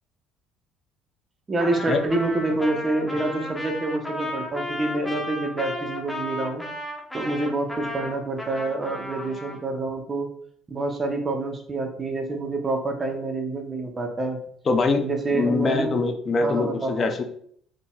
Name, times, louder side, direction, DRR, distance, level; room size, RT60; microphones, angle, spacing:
voice 1, 1.5-6.7 7.1-10.3 10.7-14.4 15.0-15.9 16.4-17.1, right 2 dB, 30° right, 4 dB, 0.9 m, -27 dB
Trumpet, 1.6-9.6, left 1 dB, 5° left, 1.0 m, -34 dB
voice 2, 14.7-15.0 15.3-17.2, left 3 dB, 40° left, 6 dB, 0.5 m, -23 dB
3.8 x 3.6 x 2.3 m, 0.62 s
hypercardioid pair, 65°, 0 cm